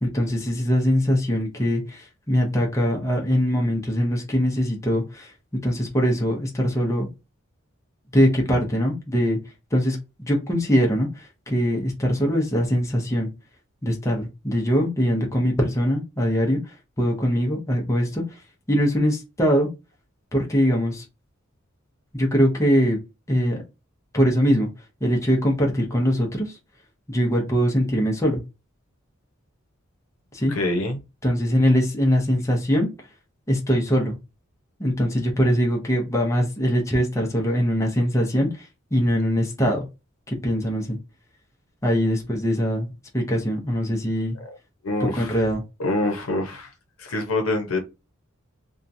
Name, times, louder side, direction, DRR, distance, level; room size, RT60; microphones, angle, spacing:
voice 1, 0.0-5.3 5.6-7.1 8.1-9.4 9.7-13.3 13.8-18.2 18.7-19.7 20.3-21.0 22.1-23.0 23.3-23.6 24.1-24.7 25.0-26.6 27.1-28.4 30.3-30.5 31.2-32.9 33.5-34.2 34.8-39.9 40.3-41.0 41.8-44.4 45.0-45.6, equal, 15° left, 0.7 m, -22 dB
voice 2, 30.5-31.0 44.8-45.4 45.8-46.7 47.0-47.8, left 2 dB, 80° left, 0.8 m, -25 dB
2.8 x 2.3 x 2.6 m
head